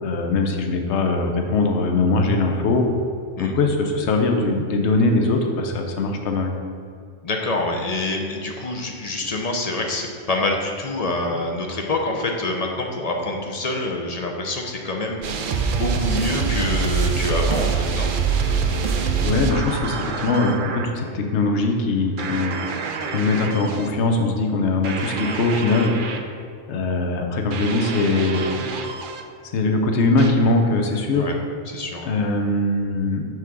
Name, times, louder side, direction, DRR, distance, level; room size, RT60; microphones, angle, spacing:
voice 1, 0.0-2.8 3.4-6.5 19.2-22.5 23.1-25.9 26.7-28.4 29.5-31.3 32.0-33.2, left 3 dB, 65° left, 4 dB, 1.0 m, -21 dB
voice 2, 7.2-18.1 31.1-31.3 31.7-32.1, left 2 dB, 45° left, 1 dB, 0.6 m, -26 dB
sound 1, 15.2-20.9 22.2-23.9 24.8-26.2 27.5-29.2 30.2-30.3, right 5 dB, 60° right, 0.6 m, -25 dB
6.0 x 3.7 x 5.9 m, 2.4 s
omnidirectional pair, 1.3 m